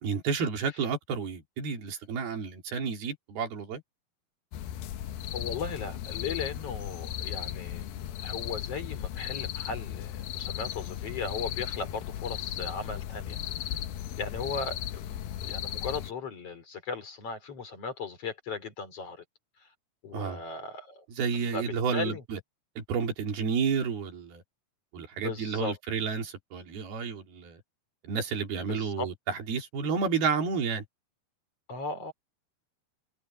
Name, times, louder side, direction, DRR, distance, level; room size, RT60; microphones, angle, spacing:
voice 1, 0.0-3.8 20.1-20.4 21.1-22.4 22.8-24.4 24.9-27.6 28.0-30.8, right 5 dB, 65° right, 5.1 m, -31 dB
sound 1, 4.5-16.1, left 11 dB, 75° left, 2.7 m, -36 dB
voice 2, 5.3-13.8 14.2-19.2 20.0-21.0 21.5-21.7 21.9-22.2 25.2-25.8 28.7-29.1 31.7-32.1, left 4 dB, 35° left, 4.8 m, -37 dB
omnidirectional pair, 4.7 m